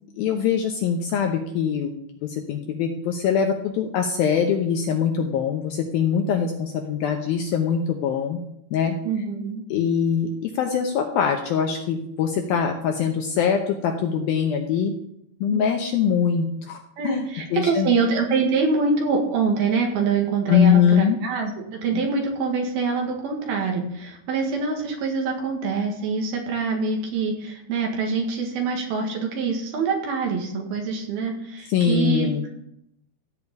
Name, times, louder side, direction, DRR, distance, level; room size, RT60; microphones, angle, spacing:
voice 1, 0.2-1.9 2.2-8.4 8.7-9.0 9.7-14.9 15.4-17.9 20.5-21.2 21.9-22.0 31.7-32.5, left 7 dB, 75° left, 3 dB, 2.3 m, -23 dB
voice 2, 9.0-9.6 15.5-15.7 17.0-32.5, right 4 dB, 65° right, 1 dB, 3.4 m, -25 dB
15.0 x 5.2 x 8.3 m, 0.77 s
omnidirectional pair, 5.2 m